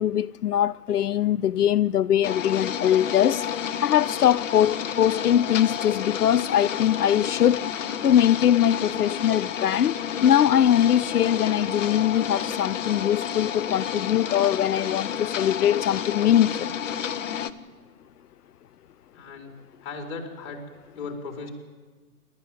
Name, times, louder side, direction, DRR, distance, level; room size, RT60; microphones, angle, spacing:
voice 1, 0.0-3.5 3.8-7.6 8.0-10.0 10.2-16.7, left 10 dB, 85° left, 0.5 m, -22 dB
sound 1, 2.2-17.5, left 8 dB, 55° left, 1.2 m, -30 dB
voice 2, 19.1-19.5 19.8-20.6 20.9-21.5, left 4 dB, 40° left, 4.6 m, -36 dB
28.0 x 13.0 x 9.2 m
figure-of-eight pair, 135°, 45 cm